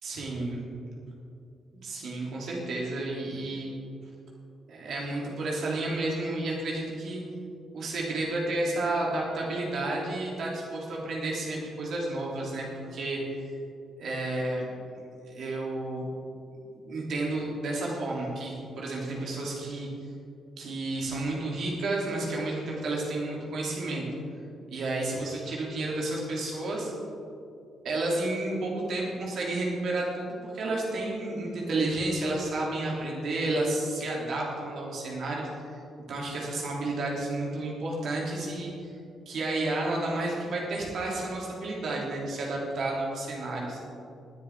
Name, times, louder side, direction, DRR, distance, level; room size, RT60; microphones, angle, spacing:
voice 1, 0.0-0.6 1.8-3.7 4.7-7.2 7.7-13.5 14.0-14.7 15.0-16.0 16.7-19.9 20.6-24.0 24.7-26.9 27.8-35.5 36.1-38.7 39.2-43.8, right 2 dB, 55° right, -3 dB, 3.3 m, -31 dB
18.0 x 10.0 x 3.8 m, 2.6 s
figure-of-eight pair, 40°, 0 cm